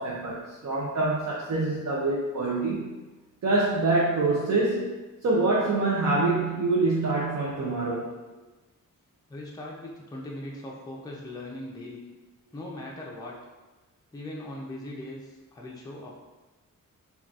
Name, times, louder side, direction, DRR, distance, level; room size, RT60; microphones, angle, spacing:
voice 1, 0.0-2.9 3.4-8.1, right 2 dB, 55° right, -5 dB, 0.5 m, -25 dB
voice 2, 9.3-12.0 12.5-13.4 14.1-16.2, left 1 dB, 10° left, -3 dB, 0.4 m, -39 dB
3.7 x 2.3 x 2.3 m, 1.2 s
wide cardioid pair, 135°, 33 cm